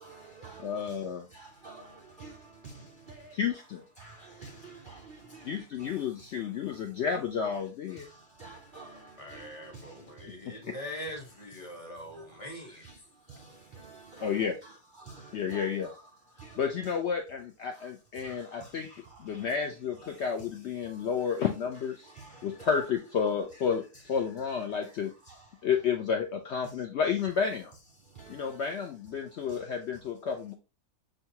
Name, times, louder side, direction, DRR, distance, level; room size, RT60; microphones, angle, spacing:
voice 1, 0.0-0.7 1.3-2.4 2.6-2.7 3.1-3.3 4.0-5.9 8.4-9.5 9.7-9.8 12.8-12.9 13.8-14.7 15.1-15.9 16.4-16.6 18.2-18.4 18.8-18.9 20.4-20.5 22.2-22.9 23.5-23.6 25.3-25.4 28.2-28.5, right 3 dB, 85° right, 0.4 m, -49 dB
voice 2, 0.6-1.3 3.3-3.8 5.4-8.1 10.5-10.6 14.2-14.6 15.3-15.9 16.6-18.9 19.2-21.9 22.4-25.1 25.6-27.7 28.3-30.6, left 6 dB, 65° left, 0.7 m, -31 dB
voice 3, 9.2-12.9, left 1 dB, 25° left, 1.0 m, -42 dB
6.3 x 2.3 x 2.8 m
omnidirectional pair, 1.6 m